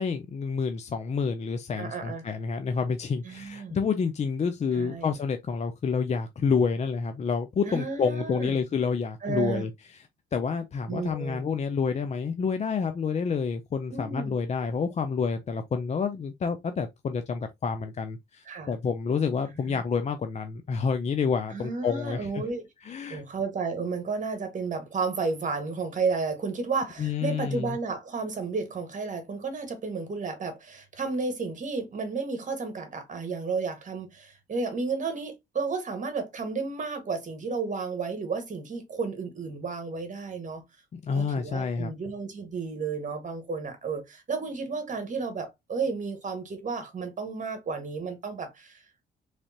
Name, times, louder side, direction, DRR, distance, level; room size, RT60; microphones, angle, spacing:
voice 1, 0.0-9.7 10.3-22.4 22.8-23.2 27.0-27.8 40.9-42.0, left 5 dB, 35° left, 0.4 m, -28 dB
voice 2, 1.8-2.2 3.2-3.8 4.7-5.1 7.7-8.6 9.2-9.6 10.9-11.4 13.9-14.3 18.5-18.7 19.5-19.8 21.5-22.6 23.1-40.6 41.1-48.8, right 4 dB, 40° right, 1.5 m, -32 dB
3.5 x 3.3 x 2.8 m
cardioid pair, 90°, 20 cm